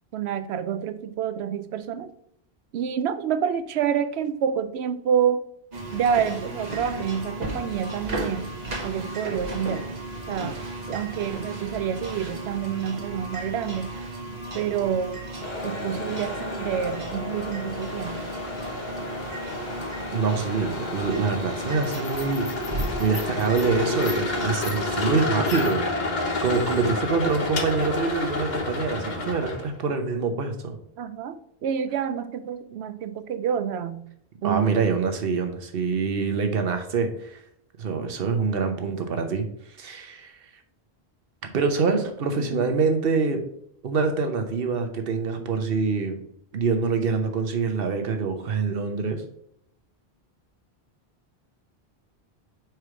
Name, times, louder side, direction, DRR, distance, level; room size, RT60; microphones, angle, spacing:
voice 1, 0.1-2.1 2.7-5.4 5.9-8.5 8.8-9.9 10.3-10.6 10.9-14.0 14.5-15.2 15.6-18.3 31.0-34.0 34.4-34.6 42.4-42.6, right 8 dB, 90° right, 12 dB, 0.8 m, -28 dB
sound 1, 5.7-25.3, right 2 dB, 45° right, 1.1 m, -35 dB
sound 2, 15.4-29.7, left 3 dB, 45° left, 1.1 m, -30 dB
voice 2, 20.1-25.8 26.4-30.8 34.4-37.4 37.8-39.5 39.8-40.4 41.4-43.5 43.8-46.2 46.5-49.2, right 4 dB, 65° right, 6 dB, 1.1 m, -25 dB
4.9 x 4.6 x 4.7 m, 0.72 s
omnidirectional pair, 1.1 m